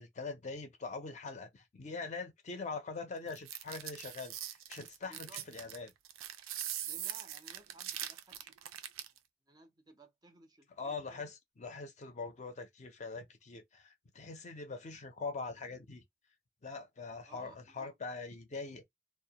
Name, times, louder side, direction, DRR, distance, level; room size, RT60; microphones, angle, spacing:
voice 1, 0.0-4.3 4.7-5.9 10.8-16.0 16.6-18.8, left 4 dB, 35° left, 0.5 m, -43 dB
sound 1, 3.3-9.2, right 11 dB, 85° right, 0.4 m, -42 dB
voice 2, 5.0-5.5 6.8-8.6 9.5-11.3 17.3-17.9, right 3 dB, 20° right, 0.4 m, -58 dB
2.1 x 2.1 x 2.8 m
head